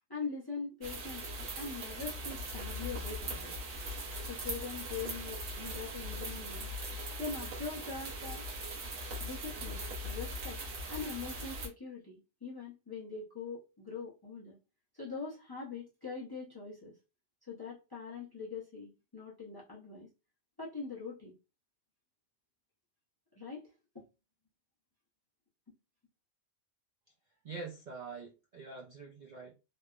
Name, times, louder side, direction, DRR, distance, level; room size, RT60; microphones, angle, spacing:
voice 1, 0.1-3.6 4.3-6.7 7.2-8.4 9.2-10.6 10.9-14.6 14.9-16.9 17.5-20.1 20.6-21.3 23.3-23.7, left 5 dB, 25° left, 0.6 m, -42 dB
sound 1, 0.8-11.7, right 1 dB, 85° right, 1.2 m, -40 dB
voice 2, 27.4-29.5, right 4 dB, 55° right, 0.5 m, -45 dB
3.2 x 2.0 x 2.3 m
omnidirectional pair, 1.3 m